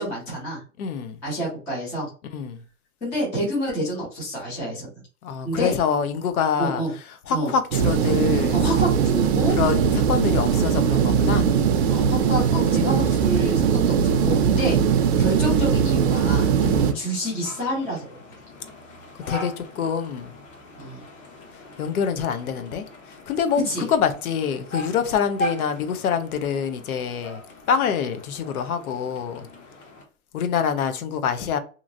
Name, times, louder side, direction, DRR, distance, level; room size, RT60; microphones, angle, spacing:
voice 1, 0.0-0.6 1.2-2.1 3.0-4.9 5.4-5.7 6.6-6.9 7.3-7.5 8.5-9.6 11.9-14.8 15.2-16.5 16.9-18.1 20.8-21.0 23.7-23.9, right 1 dB, 5° left, 0.3 m, -28 dB
voice 2, 0.8-1.2 2.3-2.6 5.2-8.7 9.5-11.5 12.8-13.0 14.6-14.8 16.6-16.9 19.3-20.3 21.5-27.4 27.7-29.5 30.3-31.6, left 7 dB, 80° left, 0.7 m, -26 dB
sound 1, 7.7-16.9, right 7 dB, 50° right, 0.5 m, -20 dB
sound 2, 16.3-30.0, equal, 55° left, 1.4 m, -39 dB
2.9 x 2.6 x 2.5 m
hypercardioid pair, 145°, 43 cm